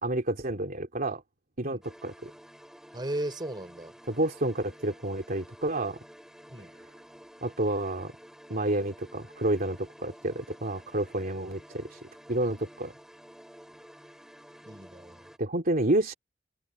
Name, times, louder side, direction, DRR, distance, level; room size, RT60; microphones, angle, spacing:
voice 1, 0.0-1.2 1.6-2.3 4.1-6.0 7.4-8.1 8.5-12.0 12.3-12.9 15.4-16.1, right 1 dB, 50° right, 3.2 m, -29 dB
sound 1, 1.8-15.4, equal, 5° right, 5.1 m, -52 dB
voice 2, 2.9-3.9 6.5-6.7 14.7-15.3, right 1 dB, 25° right, 4.5 m, -36 dB
head